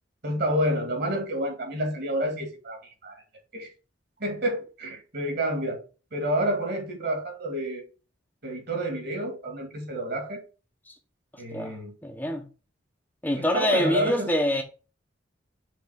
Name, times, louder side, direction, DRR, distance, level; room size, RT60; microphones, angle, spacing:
voice 1, 0.2-3.2 3.5-3.7 4.2-5.8 6.1-7.8 8.4-10.4 11.4-11.9 13.4-14.3, right 1 dB, 55° right, 2.2 m, -29 dB
voice 2, 12.0-12.4 13.2-14.6, equal, 10° left, 0.8 m, -25 dB
5.8 x 3.5 x 5.0 m
head